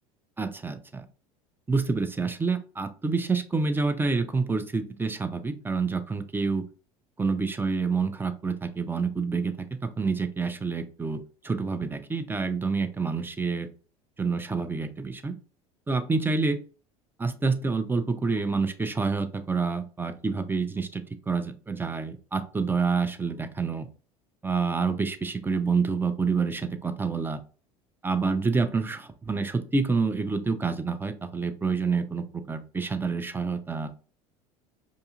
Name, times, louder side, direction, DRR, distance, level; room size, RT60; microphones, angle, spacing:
voice 1, 0.4-1.1 1.7-6.6 7.2-13.7 14.2-15.3 15.9-16.6 17.2-23.9 24.4-27.4 28.0-33.9, right 4 dB, 10° right, 9 dB, 0.5 m, -28 dB
4.9 x 2.7 x 2.3 m, 0.37 s
hypercardioid pair, 75°, 17 cm